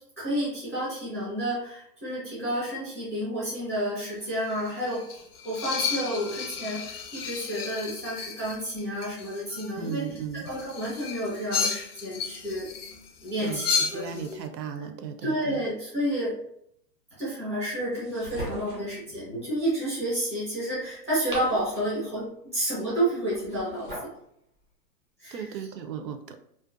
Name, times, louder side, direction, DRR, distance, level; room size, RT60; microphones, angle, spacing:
voice 1, 0.2-10.1 10.3-12.7 13.2-14.2 14.8-14.9 15.2-16.3 17.1-24.1 25.2-25.6, right 1 dB, 20° left, -9 dB, 0.5 m, -30 dB
sound 1, 4.0-14.3, left 6 dB, 65° left, 0.5 m, -33 dB
voice 2, 9.8-10.5 13.4-15.6 25.3-26.4, right 7 dB, 85° right, 7 dB, 0.6 m, -36 dB
sound 2, 17.9-19.0 20.9-22.1 23.3-24.2, right 2 dB, 35° right, 0.4 m, -40 dB
2.5 x 2.2 x 2.4 m, 0.72 s
hypercardioid pair, 175°, 49 cm